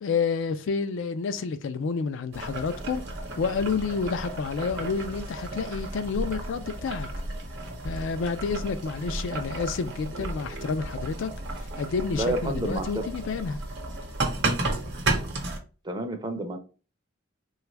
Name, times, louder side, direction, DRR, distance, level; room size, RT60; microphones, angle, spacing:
voice 1, 0.0-3.0 3.4-7.1 7.8-11.3 11.6-13.6, left 5 dB, 70° left, 0.4 m, -29 dB
Boiling, 2.3-15.6, right 2 dB, 60° right, 0.8 m, -33 dB
voice 2, 10.1-10.7 12.2-13.0 15.8-16.6, right 1 dB, 20° right, 0.5 m, -30 dB
3.3 x 2.4 x 3.1 m
head